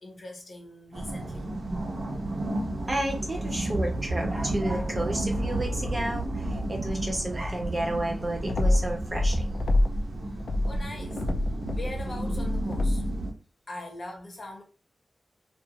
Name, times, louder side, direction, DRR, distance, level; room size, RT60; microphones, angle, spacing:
voice 1, 0.0-1.4 10.7-11.2 11.7-13.0 13.7-14.6, left 2 dB, 45° left, 0.7 m, -41 dB
sound 1, 0.9-13.3, right 1 dB, 60° right, 0.8 m, -33 dB
voice 2, 2.9-9.6, right 1 dB, 25° right, 0.7 m, -31 dB
sound 2, 8.5-10.1 10.4-13.2, left 1 dB, 70° left, 0.3 m, -26 dB
2.4 x 2.4 x 2.8 m
wide cardioid pair, 140°, 0 cm